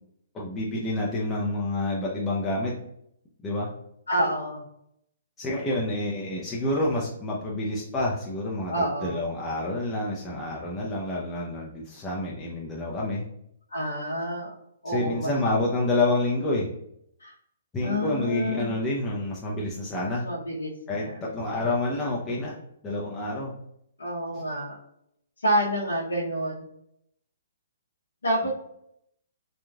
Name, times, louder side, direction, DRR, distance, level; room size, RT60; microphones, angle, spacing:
voice 1, 0.3-2.7 3.4-3.7 5.4-13.2 14.9-16.7 17.7-20.3 20.9-22.6 22.8-23.5 28.4-28.5, left 2 dB, 15° left, -5 dB, 0.6 m, -28 dB
voice 2, 4.1-4.6 8.7-9.2 13.7-14.5 14.8-15.3 17.2-17.3 17.8-18.7 20.2-21.2 24.0-24.8 25.4-26.7 28.2-28.5, equal, 85° left, -6 dB, 0.8 m, -28 dB
3.0 x 2.4 x 2.3 m, 0.74 s
hypercardioid pair, 135°, 0 cm